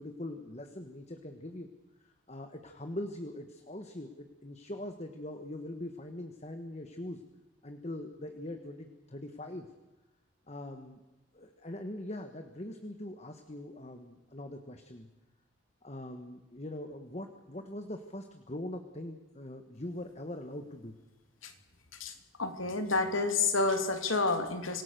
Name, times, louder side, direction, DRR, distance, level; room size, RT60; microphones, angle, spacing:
voice 1, 0.0-1.7 2.0-7.2 7.6-9.7 10.5-11.0 11.3-15.1 15.8-21.0, left 1 dB, 35° left, 6 dB, 1.4 m, -42 dB
voice 2, 22.4-24.8, left 3 dB, 90° left, 7 dB, 2.8 m, -29 dB
26.5 x 17.5 x 6.8 m, 1.1 s
head